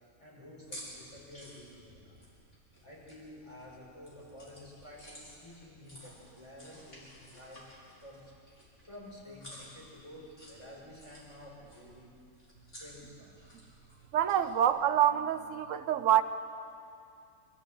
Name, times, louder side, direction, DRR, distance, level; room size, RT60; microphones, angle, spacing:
voice 1, 0.2-2.2 2.8-7.6 8.0-8.3 8.9-12.1 12.8-13.3, left 1 dB, 20° left, 6.4 m, -51 dB
sound 1, 0.6-14.7, equal, 55° left, 5.0 m, -54 dB
voice 2, 14.1-16.2, right 10 dB, 65° right, 1.1 m, -26 dB
25.0 x 14.5 x 8.2 m
omnidirectional pair, 1.5 m